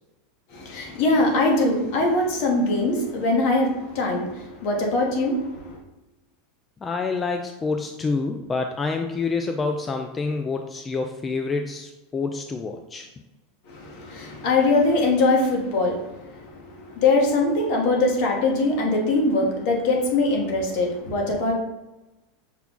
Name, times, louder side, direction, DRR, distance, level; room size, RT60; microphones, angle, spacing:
voice 1, 0.5-5.4 5.7-5.8 13.7-15.9 17.0-21.5, left 2 dB, 60° left, 1 dB, 1.2 m, -22 dB
voice 2, 6.8-13.1, left 4 dB, 20° left, 4 dB, 0.3 m, -27 dB
5.8 x 2.3 x 3.6 m, 1.0 s
supercardioid pair, 120°, 0 cm